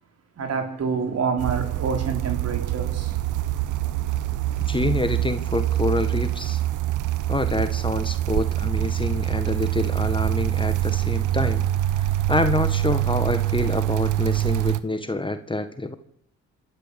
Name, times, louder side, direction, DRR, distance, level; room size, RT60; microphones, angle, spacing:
voice 1, 0.4-3.2, right 5 dB, 55° right, 4.8 m, -27 dB
sound 1, 1.4-14.8, right 14 dB, 85° right, 1.1 m, -25 dB
voice 2, 4.7-6.6 7.3-11.6 11.9-16.0, left 2 dB, 15° left, 1.7 m, -27 dB
27.0 x 12.5 x 8.4 m
cardioid pair, 90°, 30 cm